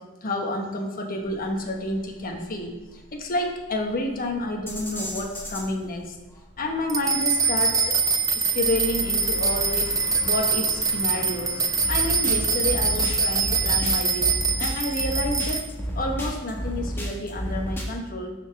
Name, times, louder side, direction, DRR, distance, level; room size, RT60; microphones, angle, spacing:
voice 1, 0.2-2.7 3.2-6.1 6.6-8.0 8.5-9.9 10.2-11.6 11.9-14.3 14.6-15.7 16.0-18.3, left 1 dB, 45° left, 2 dB, 1.2 m, -29 dB
sound 1, 1.3-17.8, equal, 10° left, 1.4 m, -33 dB
sound 2, 6.9-15.6, right 4 dB, 15° right, 0.5 m, -24 dB
sound 3, 8.5-14.1, left 1 dB, 90° left, 1.2 m, -40 dB
7.3 x 4.5 x 5.9 m, 1.1 s
head